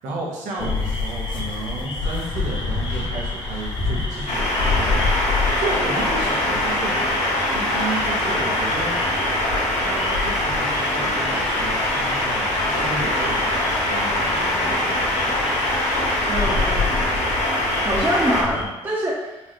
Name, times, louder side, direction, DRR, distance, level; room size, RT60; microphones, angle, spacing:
voice 1, 0.0-7.0 7.5-9.0 9.7-15.4, right 3 dB, 85° right, -3 dB, 0.8 m, -33 dB
sound 1, 0.6-18.6, left 3 dB, 40° left, 0.9 m, -29 dB
sound 2, 2.0-16.5, left 1 dB, 90° left, 1.0 m, -38 dB
sound 3, 4.3-18.4, left 1 dB, 65° left, 1.0 m, -23 dB
voice 2, 16.3-17.0 17.8-19.5, right 1 dB, 20° right, -6 dB, 0.7 m, -25 dB
4.1 x 2.0 x 3.0 m, 1.0 s
supercardioid pair, 65°, 12 cm